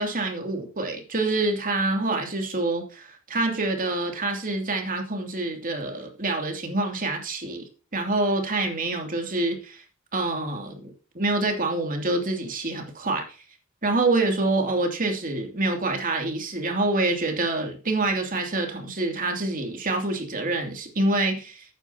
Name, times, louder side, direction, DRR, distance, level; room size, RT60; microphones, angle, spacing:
voice 1, 0.0-7.6 7.9-9.8 10.1-13.2 13.8-21.6, right 2 dB, 40° right, 2.7 m, -26 dB
12.5 x 9.3 x 2.9 m
head